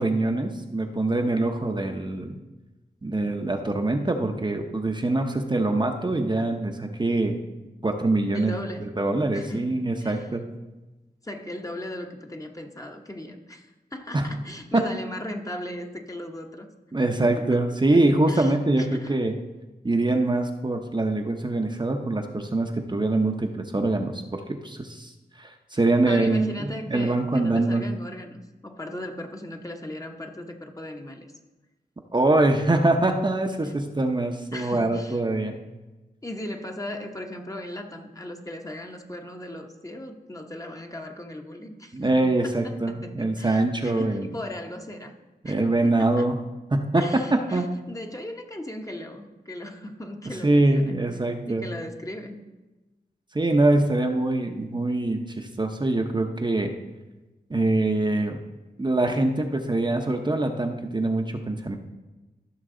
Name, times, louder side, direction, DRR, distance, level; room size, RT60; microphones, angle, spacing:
voice 1, 0.0-2.4 3.0-7.4 7.8-8.5 8.8-10.4 14.1-14.3 14.7-14.8 16.9-19.3 19.8-25.1 25.4-27.8 32.1-35.6 41.9-44.3 45.4-46.4 46.7-47.2 47.5-47.7 50.4-51.7 53.3-56.7 57.5-58.4 58.8-61.8, right 2 dB, 25° right, 3 dB, 0.8 m, -24 dB
voice 2, 8.3-9.0 9.3-10.3 11.2-16.7 17.2-17.6 17.9-19.2 26.0-31.3 33.6-33.7 34.5-35.2 36.2-42.2 42.4-45.2 45.4-46.3 47.0-51.0 51.5-52.5, left 1 dB, 20° left, 3 dB, 1.0 m, -37 dB
14.5 x 5.9 x 3.8 m, 1.1 s
wide cardioid pair, 75°, 17 cm